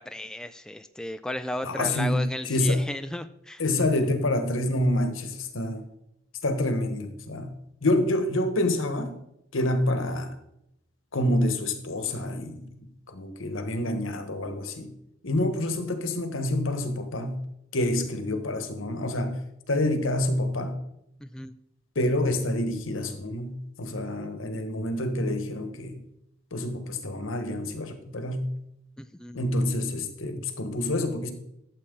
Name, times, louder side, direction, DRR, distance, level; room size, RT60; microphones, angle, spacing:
voice 1, 0.0-3.6 21.2-21.5 29.0-29.5, left 1 dB, 5° left, 10 dB, 0.3 m, -35 dB
voice 2, 1.6-2.9 3.6-5.9 6.4-9.1 9.5-10.3 11.1-14.9 15.2-17.5 17.7-20.8 21.9-26.0 26.5-28.6 29.3-31.3, left 1 dB, 80° left, 8 dB, 1.2 m, -27 dB
12.5 x 7.7 x 3.8 m, 0.80 s
head